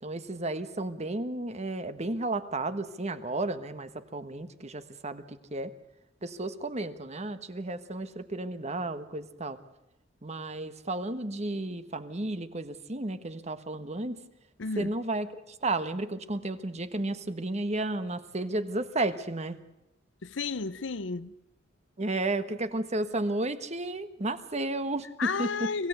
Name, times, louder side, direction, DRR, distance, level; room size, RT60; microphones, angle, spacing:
voice 1, 0.0-5.7 6.2-9.6 10.2-14.2 14.8-19.6 22.0-25.1 25.4-25.5, right 2 dB, 35° right, 1.4 m, -33 dB
voice 2, 14.6-14.9 20.2-21.4 25.2-25.9, left 4 dB, 70° left, 0.8 m, -32 dB
26.0 x 16.5 x 8.2 m
head